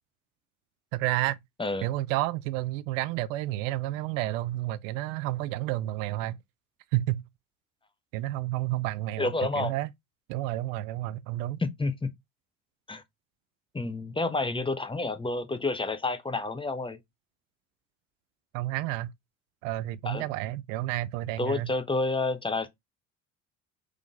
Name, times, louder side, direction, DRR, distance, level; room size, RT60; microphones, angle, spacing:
voice 1, 0.9-1.4 1.8-6.4 6.9-7.2 8.1-9.9 10.3-11.6 18.5-19.1 19.6-21.7, right 16 dB, 75° right, 0.5 m, -30 dB
voice 2, 9.2-9.7 11.6-12.1 12.9-13.0 13.7-17.0 20.0-20.2 21.4-22.7, left 3 dB, 15° left, 0.8 m, -29 dB
3.8 x 3.4 x 3.5 m
hypercardioid pair, 70°, 39 cm